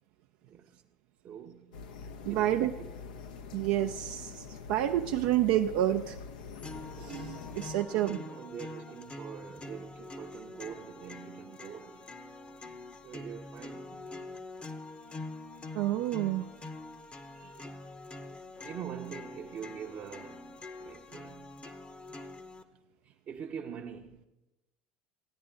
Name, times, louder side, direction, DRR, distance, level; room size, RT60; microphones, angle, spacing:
voice 1, 0.4-0.8 1.2-1.8 2.3-2.9 7.9-12.1 13.0-14.4 18.6-21.5 23.0-24.2, right 8 dB, 45° right, 0.7 m, -44 dB
sound 1, 1.7-7.7, left 5 dB, 85° left, 0.7 m, -45 dB
voice 2, 2.2-2.7 3.5-6.2 7.0-8.2 15.7-16.5, right 13 dB, 75° right, 0.4 m, -29 dB
sound 2, 6.6-22.6, left 2 dB, 25° left, 0.8 m, -45 dB
14.5 x 9.4 x 3.7 m
supercardioid pair, 85°, 5 cm